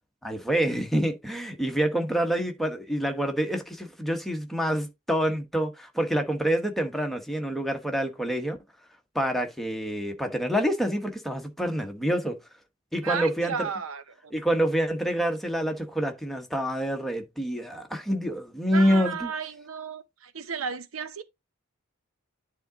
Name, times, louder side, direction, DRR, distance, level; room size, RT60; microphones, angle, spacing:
voice 1, 0.2-8.6 9.1-12.3 12.9-13.7 14.3-19.3, equal, ahead, 1.2 m, -27 dB
voice 2, 13.0-14.3 18.7-21.2, right 6 dB, 85° right, 0.8 m, -33 dB
10.5 x 3.7 x 3.9 m
head